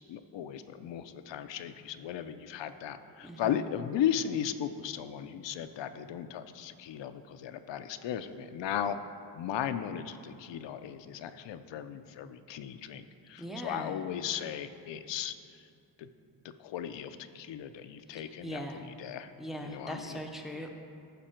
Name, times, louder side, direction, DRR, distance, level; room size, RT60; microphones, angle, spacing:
voice 1, 0.1-9.0 9.3-15.6 16.0-16.1 16.6-18.6 18.9-19.3 19.6-20.2, left 9 dB, 85° left, 10 dB, 0.5 m, -36 dB
voice 2, 3.2-3.6 13.4-14.0 18.1-18.8 19.4-20.7, equal, ahead, 2 dB, 0.5 m, -40 dB
13.5 x 5.3 x 4.4 m, 2.5 s
wide cardioid pair, 160°, 43 cm